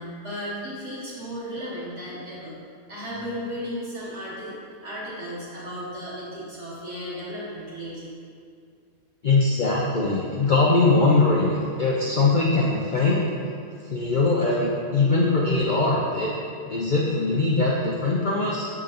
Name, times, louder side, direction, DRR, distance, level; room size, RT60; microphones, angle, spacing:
voice 1, 0.0-2.6 2.9-4.5 4.8-8.1, equal, 50° right, -9 dB, 1.9 m, -35 dB
voice 2, 9.2-13.2 13.9-16.3 16.6-18.7, left 3 dB, 90° left, -5 dB, 0.4 m, -21 dB
6.6 x 3.8 x 3.8 m, 2.3 s
omnidirectional pair, 1.6 m